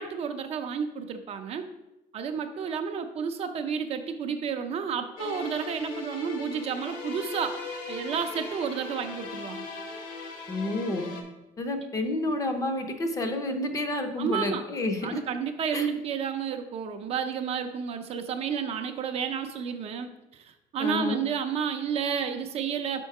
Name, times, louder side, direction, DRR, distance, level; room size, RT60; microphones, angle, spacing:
voice 1, 0.0-1.7 2.1-7.6 7.9-9.7 14.2-14.6 15.0-23.1, right 7 dB, 40° right, 7 dB, 0.4 m, -31 dB
sound 1, 5.2-11.2, left 3 dB, 65° left, 1.1 m, -38 dB
voice 2, 10.5-11.1 11.6-15.2 15.7-15.9 20.8-21.2, left 2 dB, 20° left, 6 dB, 0.6 m, -30 dB
5.4 x 4.4 x 4.7 m, 0.96 s
cardioid pair, 170°, 16 cm